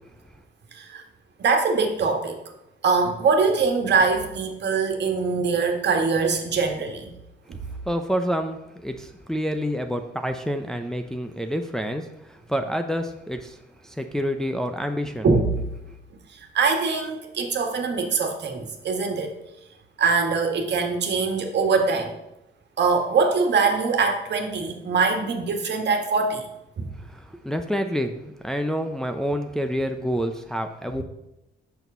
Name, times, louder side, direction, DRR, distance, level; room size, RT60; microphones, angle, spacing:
voice 1, 0.7-1.0 1.4-2.4 2.8-7.1 7.5-7.6 15.2-15.7 16.3-19.3 20.0-22.1 22.8-26.4 26.8-26.9, right 4 dB, 60° right, 3 dB, 1.6 m, -23 dB
voice 2, 7.9-13.6 13.8-15.3 27.1-31.0, equal, 5° left, 5 dB, 0.6 m, -28 dB
6.8 x 6.2 x 5.4 m, 0.90 s
cardioid pair, 90°, 20 cm